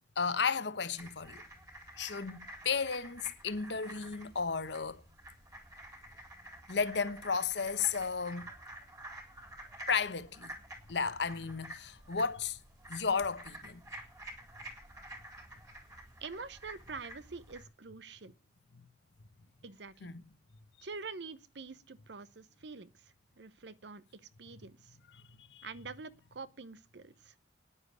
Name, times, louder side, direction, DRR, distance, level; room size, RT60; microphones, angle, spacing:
voice 1, 0.2-1.4 2.0-5.0 6.7-8.5 9.9-10.5 10.9-12.6 12.9-13.8 18.7-18.9 20.0-20.2 25.1-25.7, left 5 dB, 65° left, 1.0 m, -34 dB
sound 1, 1.0-17.7, right 1 dB, 20° right, 3.8 m, -50 dB
voice 2, 16.2-18.3 19.6-20.1 20.8-22.9 23.4-24.0 24.4-25.0 25.6-27.3, right 4 dB, 65° right, 0.8 m, -46 dB
10.0 x 9.7 x 8.2 m
head